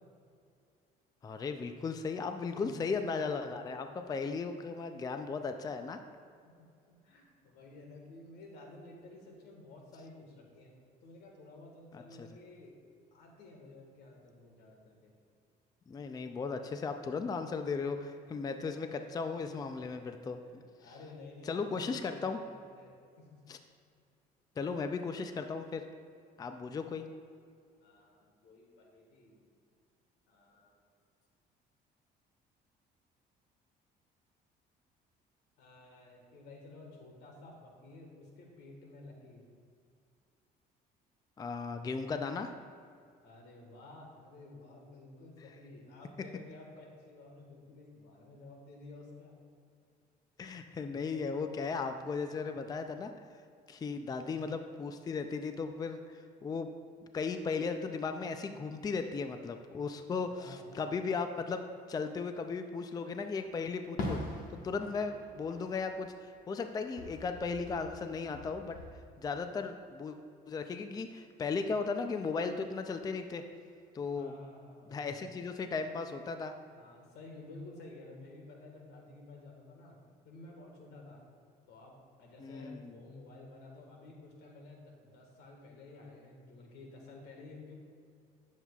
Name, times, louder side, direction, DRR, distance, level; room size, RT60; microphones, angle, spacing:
voice 1, 1.2-6.0 12.2-12.3 15.9-20.4 21.5-22.4 23.5-23.6 24.6-25.9 26.4-27.1 41.4-42.5 50.4-53.1 53.7-56.7 57.1-64.2 64.5-68.8 69.2-70.2 70.5-73.5 73.9-74.3 74.9-76.5 82.4-82.9, left 4 dB, 20° left, 7 dB, 0.4 m, -36 dB
voice 2, 2.6-3.0 3.4-3.9 6.4-10.7 11.0-12.7 13.1-15.1 20.5-23.4 27.8-29.4 30.3-30.8 35.6-39.4 43.2-49.4 54.0-54.4 60.3-60.8 74.2-75.5 76.7-80.0 80.3-81.2 81.7-87.7, left 2 dB, 85° left, 0 dB, 1.6 m, -52 dB
Fireworks, 64.0-66.6 66.9-68.9, left 1 dB, 55° left, 1.3 m, -42 dB
9.9 x 7.2 x 2.3 m, 2.3 s
cardioid pair, 110°, 17 cm